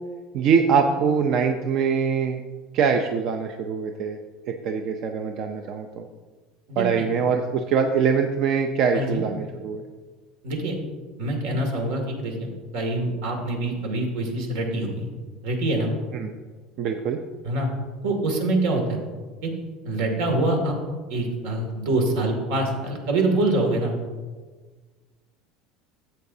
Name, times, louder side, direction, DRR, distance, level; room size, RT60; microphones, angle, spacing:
voice 1, 0.3-2.4 2.7-4.2 4.5-6.0 6.8-9.8 16.1-16.3 16.8-17.2, right 6 dB, 45° right, 5 dB, 0.5 m, -23 dB
voice 2, 6.7-7.0 8.9-9.2 10.4-10.8 11.2-15.1 15.4-15.9 17.4-17.7 18.0-19.0 19.4-19.5 19.8-20.7 21.1-23.9, right 2 dB, 75° right, 2 dB, 2.2 m, -25 dB
13.0 x 7.9 x 2.7 m, 1.4 s
cardioid pair, 155°, 0 cm